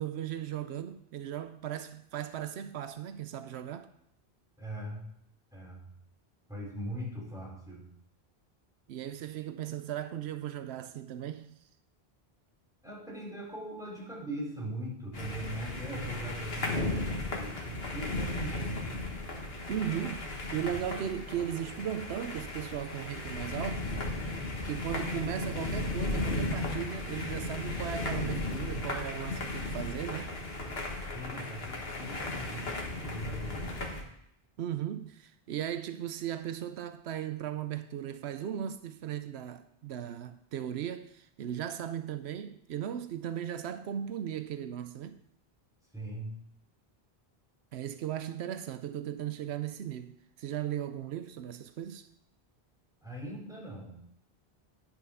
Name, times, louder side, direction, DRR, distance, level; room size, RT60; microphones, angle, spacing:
voice 1, 0.0-3.9 8.9-11.6 19.7-20.3 20.5-23.9 24.6-30.3 34.6-45.2 47.7-52.1, right 10 dB, 90° right, 0.9 m, -37 dB
voice 2, 4.6-5.1 5.5-5.9 6.5-7.9 12.8-19.0 31.1-34.0 45.9-46.4 53.0-54.0, right 1 dB, 5° right, 3.8 m, -41 dB
sound 1, 15.1-34.0, left 2 dB, 70° left, 1.7 m, -35 dB
10.5 x 5.8 x 5.6 m
omnidirectional pair, 1.1 m